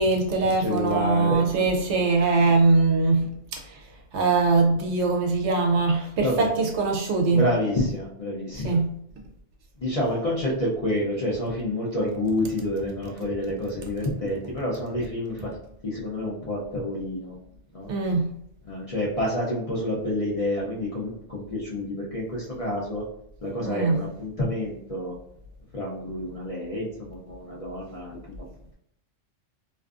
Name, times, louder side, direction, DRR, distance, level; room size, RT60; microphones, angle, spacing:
voice 1, 0.0-3.6 4.1-7.5 8.6-8.9 17.9-18.3 23.6-24.0, right 3 dB, 70° right, 1 dB, 0.8 m, -22 dB
voice 2, 0.6-2.1 6.2-6.5 7.3-8.8 9.8-15.5 15.8-17.4 17.7-17.9 18.7-23.0 23.4-25.1 25.7-28.2, left 1 dB, 50° left, -6 dB, 0.4 m, -28 dB
2.5 x 2.4 x 2.3 m, 0.72 s
omnidirectional pair, 1.3 m